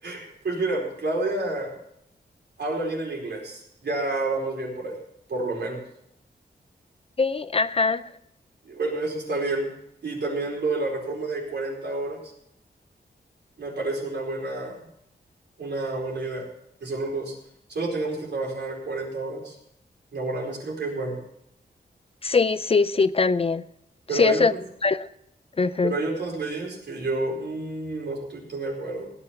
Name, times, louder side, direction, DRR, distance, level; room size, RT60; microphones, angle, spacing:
voice 1, 0.0-1.7 2.6-5.0 5.3-5.8 8.6-9.7 10.0-12.2 13.6-14.9 15.6-16.4 16.8-17.3 17.7-19.6 20.1-21.2 24.1-24.6 25.8-29.1, right 2 dB, 75° right, 4.6 m, -29 dB
voice 2, 7.2-8.0 22.2-23.6 24.1-24.5 24.8-25.1 25.6-25.9, left 4 dB, 35° left, 0.4 m, -22 dB
16.5 x 9.8 x 5.8 m
wide cardioid pair, 155°, 18 cm